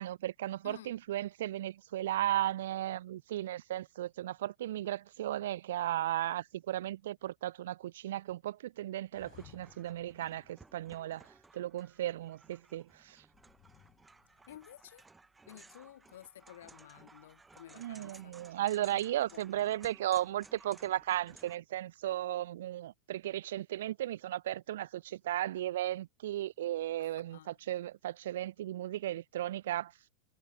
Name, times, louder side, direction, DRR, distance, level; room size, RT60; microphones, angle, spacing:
voice 1, 0.0-11.3 11.5-13.2 17.8-29.9, right 13 dB, 75° right, 0.4 m, -35 dB
voice 2, 0.6-0.9 14.5-15.0 15.5-18.3 18.9-19.4 27.0-27.6, left 12 dB, 80° left, 1.5 m, -53 dB
sound 1, 9.1-11.8 13.3-15.0, left 17 dB, 40° left, 2.0 m, -62 dB
sound 2, 9.3-21.6, right 3 dB, 10° right, 0.7 m, -59 dB
supercardioid pair, 135°, 0 cm